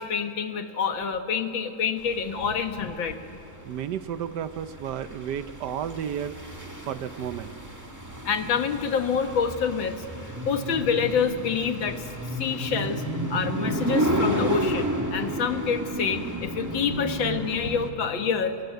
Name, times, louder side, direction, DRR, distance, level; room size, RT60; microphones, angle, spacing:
voice 1, 0.0-3.2 8.3-10.1 10.5-12.1 12.4-13.0 13.3-18.6, left 6 dB, 90° left, 7 dB, 2.1 m, -27 dB
sound 1, 2.1-17.9, right 1 dB, 10° right, 1.9 m, -31 dB
voice 2, 3.6-6.4 6.8-7.5, right 9 dB, 70° right, 12 dB, 1.3 m, -32 dB
27.5 x 21.5 x 9.2 m, 2.7 s
omnidirectional pair, 2.0 m